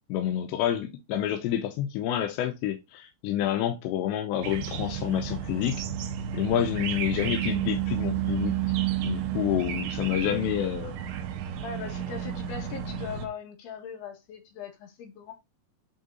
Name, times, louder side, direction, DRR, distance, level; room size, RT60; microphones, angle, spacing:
voice 1, 0.1-5.8 6.3-8.5 9.0-11.0, left 11 dB, 85° left, 2.9 m, -28 dB
sound 1, 4.4-13.3, right 10 dB, 80° right, 1.9 m, -31 dB
voice 2, 11.6-15.3, left 6 dB, 70° left, 3.6 m, -40 dB
8.5 x 3.7 x 3.8 m
omnidirectional pair, 5.0 m